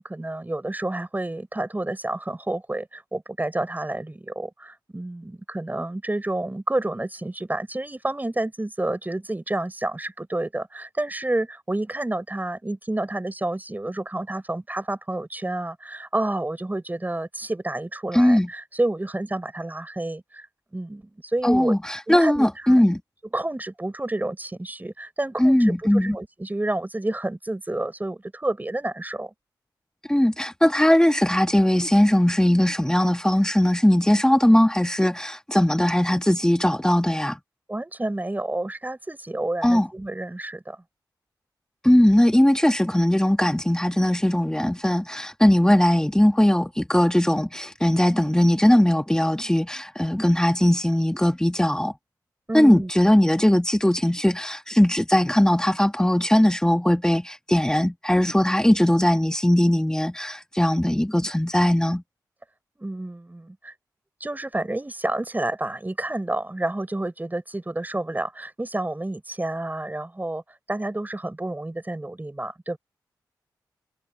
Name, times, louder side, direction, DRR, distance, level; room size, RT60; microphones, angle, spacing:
voice 1, 0.0-20.5 20.7-21.8 22.1-22.8 23.3-29.3 37.7-40.8 52.5-52.9 62.8-63.7 64.2-70.4 70.7-72.8, right 2 dB, 20° right, 4.9 m, -29 dB
voice 2, 18.1-18.5 21.4-23.0 25.4-26.2 30.1-37.4 39.6-39.9 41.8-51.9 52.5-62.0, left 1 dB, 10° left, 2.3 m, -19 dB
supercardioid pair, 45°, 8 cm